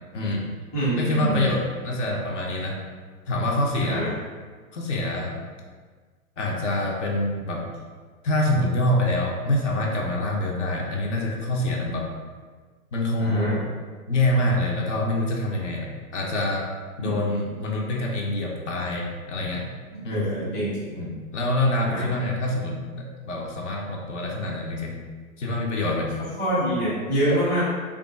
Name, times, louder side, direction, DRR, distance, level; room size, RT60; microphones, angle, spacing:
voice 1, 0.1-0.4 1.0-2.8 3.3-4.0 4.7-5.4 6.4-7.7 8.2-12.1 12.9-13.6 14.1-16.7 17.0-19.7 20.0-20.3 20.9-25.0 25.4-26.1, left 1 dB, 55° left, -1 dB, 0.7 m, -26 dB
voice 2, 0.7-1.5 3.8-4.1 13.2-13.6 17.0-17.4 19.9-20.9 21.8-22.1 26.2-27.6, right 1 dB, 5° left, -13 dB, 0.7 m, -26 dB
3.3 x 2.4 x 3.8 m, 1.5 s
figure-of-eight pair, 125°, 44 cm